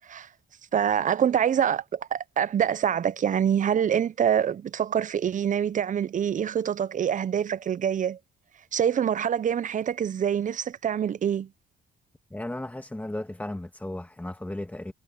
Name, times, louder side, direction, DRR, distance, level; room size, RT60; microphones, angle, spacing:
voice 1, 0.7-8.2 8.7-11.5, right 8 dB, 40° right, 0.6 m, -25 dB
voice 2, 12.3-14.9, left 1 dB, 10° left, 1.7 m, -35 dB
cardioid pair, 90°, 20 cm